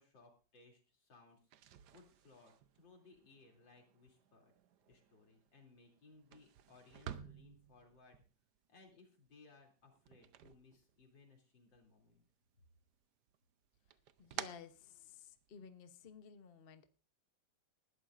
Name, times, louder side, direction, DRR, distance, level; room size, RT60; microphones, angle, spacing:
voice 1, 0.0-1.5 1.9-4.5 4.9-8.2 8.7-12.2, left 3 dB, 75° left, 2 dB, 3.7 m, -64 dB
sound 1, 1.4-11.4 11.7-12.6 12.9-15.6, right 10 dB, 65° right, 1.2 m, -53 dB
voice 2, 14.2-17.0, left 6 dB, 40° left, 9 dB, 0.8 m, -55 dB
20.0 x 12.5 x 2.5 m, 0.35 s
omnidirectional pair, 2.0 m